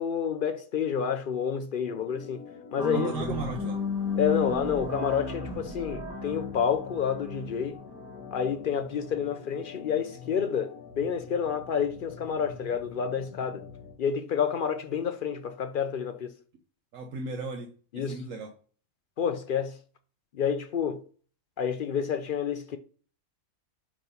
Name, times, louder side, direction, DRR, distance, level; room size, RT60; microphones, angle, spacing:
voice 1, 0.0-2.4 2.7-3.1 4.2-7.8 8.3-13.6 14.0-16.3 17.9-18.2 19.2-19.8 20.3-21.0 21.6-22.8, left 7 dB, 65° left, 0.5 m, -29 dB
Organ, 1.8-14.0, left 6 dB, 85° left, 1.2 m, -47 dB
sound 1, 2.8-9.1, left 3 dB, 5° right, 2.1 m, -34 dB
voice 2, 2.9-3.8 16.9-18.5, right 3 dB, 70° right, 1.1 m, -37 dB
6.0 x 3.1 x 5.3 m
omnidirectional pair, 1.5 m